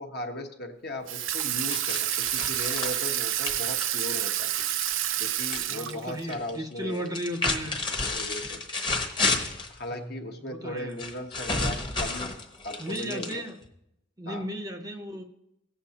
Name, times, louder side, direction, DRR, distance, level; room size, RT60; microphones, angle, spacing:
voice 1, 0.0-4.5 5.2-7.1 8.1-8.6 9.7-12.3 12.6-13.4 14.3-14.5, left 1 dB, 45° left, 4 dB, 1.1 m, -37 dB
Water tap faucet / Sink (filling or washing), 1.1-6.3, right 12 dB, 65° right, 0.5 m, -29 dB
sound 1, 1.7-5.6 5.9-6.5 7.1-9.7 11.0-13.7, left 3 dB, 20° left, 1.0 m, -31 dB
voice 2, 5.7-7.8 9.9-11.0 12.8-13.6 14.2-15.2, equal, 15° right, 5 dB, 0.7 m, -35 dB
18.0 x 7.7 x 2.9 m, 0.82 s
head